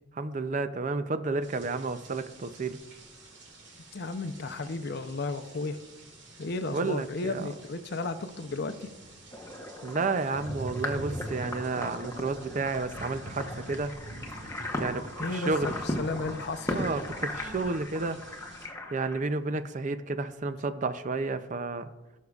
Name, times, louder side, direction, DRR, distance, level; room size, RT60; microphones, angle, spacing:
voice 1, 0.2-2.8 6.7-7.5 9.8-13.9 14.8-15.0 15.3-15.7 16.7-18.2 18.9-21.9, right 3 dB, 40° right, 11 dB, 0.4 m, -31 dB
sound 1, 1.4-18.7, right 1 dB, 60° right, 2.0 m, -46 dB
voice 2, 3.9-5.8 6.4-8.9 15.2-16.9, left 3 dB, 55° left, 9 dB, 0.6 m, -34 dB
sound 2, 9.3-19.2, left 1 dB, 15° left, 0.9 m, -37 dB
17.0 x 6.4 x 2.4 m, 1.1 s
head